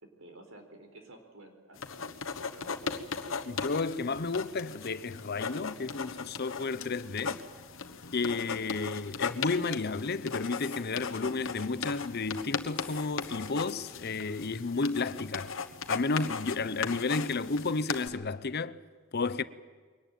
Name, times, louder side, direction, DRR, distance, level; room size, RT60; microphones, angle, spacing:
voice 1, 0.0-2.9 8.3-8.6, right 1 dB, 70° right, 4.3 m, -52 dB
sound 1, 1.8-18.1, left 5 dB, 65° left, 1.4 m, -38 dB
voice 2, 3.5-7.4 8.1-15.5 15.9-18.8 19.1-19.4, left 3 dB, 50° left, 0.8 m, -32 dB
Female speech woman speaking, 10.5-12.2 12.7-15.2, left 3 dB, 10° left, 6.0 m, -54 dB
23.0 x 18.5 x 9.2 m
head